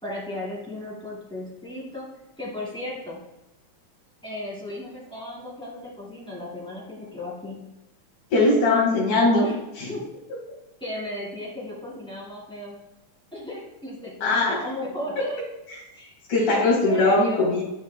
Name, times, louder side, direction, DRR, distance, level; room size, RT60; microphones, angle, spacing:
voice 1, 0.0-2.1 2.4-3.2 4.2-7.6 9.4-9.6 9.9-10.0 10.8-12.8 13.3-15.4 15.9-17.5, left 1 dB, ahead, -5 dB, 1.3 m, -35 dB
voice 2, 8.3-9.4 14.2-14.6 16.3-17.6, left 2 dB, 80° left, -5 dB, 3.2 m, -20 dB
11.5 x 4.5 x 2.2 m, 0.92 s
omnidirectional pair, 3.5 m